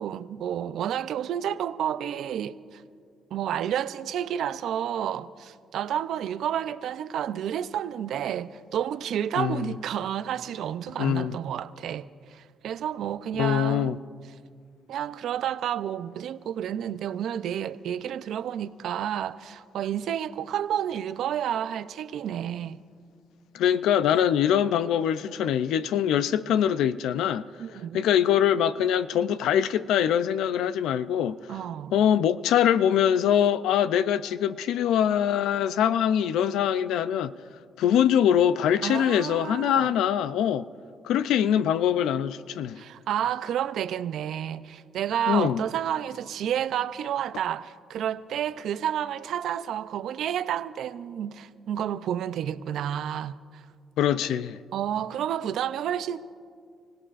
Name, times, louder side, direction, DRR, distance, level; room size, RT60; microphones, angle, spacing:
voice 1, 0.0-2.8 3.3-14.0 14.9-22.8 27.6-28.0 31.5-31.9 38.8-39.9 42.8-53.7 54.7-56.2, right 10 dB, 75° right, 0.5 m, -30 dB
voice 2, 9.4-9.7 11.0-11.4 13.4-14.0 23.5-27.4 27.9-31.4 31.9-37.3 37.8-40.7 41.0-42.8 45.3-45.6 54.0-54.6, left 9 dB, 85° left, 0.4 m, -23 dB
29.5 x 17.0 x 2.5 m
cardioid pair, 90°, 0 cm